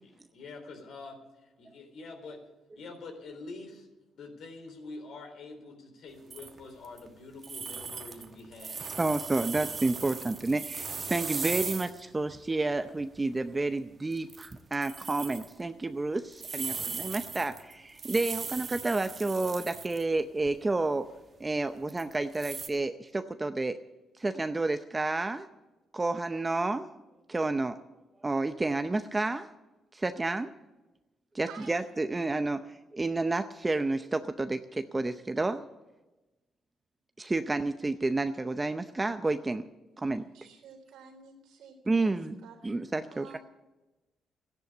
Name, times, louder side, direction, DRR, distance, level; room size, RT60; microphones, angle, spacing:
voice 1, 0.0-2.4 2.7-3.9 4.1-8.8 16.6-16.9, left 3 dB, 70° left, 5 dB, 3.7 m, -46 dB
sound 1, 6.3-7.1 7.4-12.0 12.3-12.4 13.0-13.2 13.5-13.7 14.1-15.5 16.3-20.0 20.4-20.5 21.9-22.7, right 5 dB, 40° right, 1.3 m, -38 dB
voice 2, 9.0-21.1 21.4-23.8 24.2-25.5 25.9-26.9 27.3-27.8 28.2-29.5 29.9-30.5 31.3-35.7 37.2-39.6 40.0-40.2 41.9-42.3 42.6-43.4, right 2 dB, 20° right, 9 dB, 0.6 m, -30 dB
voice 3, 31.5-31.8 40.3-42.1 42.4-42.8 43.1-43.4, right 6 dB, 90° right, 3 dB, 3.7 m, -51 dB
14.0 x 10.5 x 8.2 m, 1.1 s
cardioid pair, 90°, 0 cm